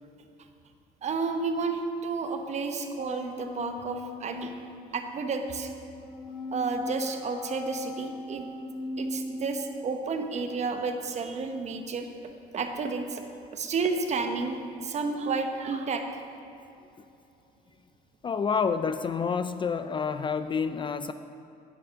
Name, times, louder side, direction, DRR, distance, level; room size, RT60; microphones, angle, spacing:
voice 1, 1.0-4.5 4.9-5.7 6.5-8.4 9.0-12.1 12.5-13.2 13.5-16.0, right 4 dB, 40° right, 6 dB, 1.0 m, -31 dB
sound 1, 3.0-11.2, left 2 dB, 45° left, 1.7 m, -40 dB
voice 2, 18.2-21.1, left 6 dB, 30° left, 11 dB, 0.4 m, -28 dB
9.9 x 8.7 x 5.9 m, 2.8 s
cardioid pair, 110°, 17 cm